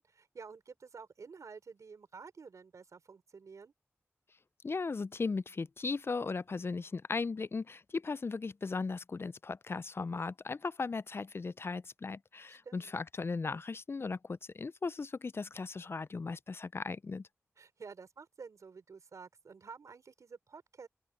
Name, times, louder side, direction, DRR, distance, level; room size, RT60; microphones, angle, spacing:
voice 1, 0.0-3.7 12.5-12.9 17.6-20.9, right 5 dB, 85° right, 5.5 m, -51 dB
voice 2, 4.6-17.3, left 4 dB, 50° left, 0.3 m, -37 dB
open air
cardioid pair, 50°, 5 cm